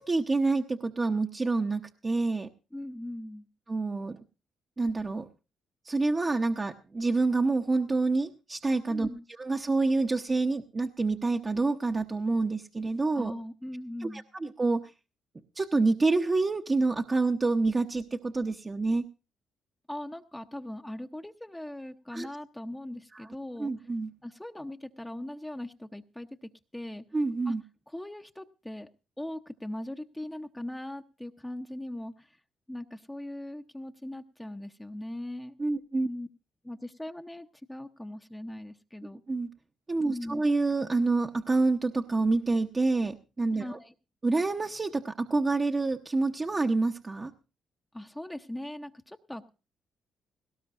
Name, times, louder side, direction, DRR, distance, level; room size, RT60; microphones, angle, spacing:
voice 1, 0.0-2.5 3.7-4.2 4.8-5.3 5.8-13.3 14.0-14.9 15.5-19.0 22.1-22.3 23.1-23.3 23.6-24.1 27.1-27.6 35.6-36.1 39.3-39.5 39.9-43.8 44.2-47.3, right 3 dB, 25° right, 4 dB, 0.9 m, -27 dB
voice 2, 2.7-3.5 8.9-9.2 13.1-14.2 19.9-23.9 24.2-27.0 27.5-27.6 27.9-28.9 29.2-32.4 32.7-35.6 36.0-36.3 36.6-39.2 40.1-40.4 43.6-43.9 47.9-49.5, left 1 dB, 5° left, 5 dB, 0.8 m, -40 dB
18.5 x 17.0 x 2.5 m, 0.31 s
cardioid pair, 90°, 0 cm